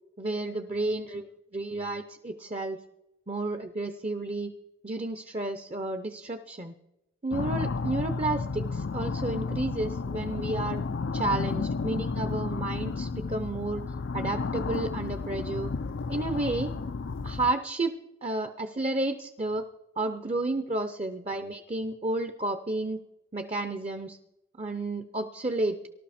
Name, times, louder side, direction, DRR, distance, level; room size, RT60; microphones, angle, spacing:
voice 1, 0.2-1.3 1.5-2.8 3.3-4.5 4.8-6.7 7.2-10.8 11.1-13.9 14.1-15.7 16.1-16.7 17.2-17.9 18.2-19.7 20.0-23.0 23.3-24.2 24.6-25.8, right 2 dB, 30° right, 9 dB, 0.7 m, -31 dB
sound 1, 7.3-17.5, left 4 dB, 75° left, 0.5 m, -32 dB
19.0 x 12.5 x 4.3 m, 0.87 s
head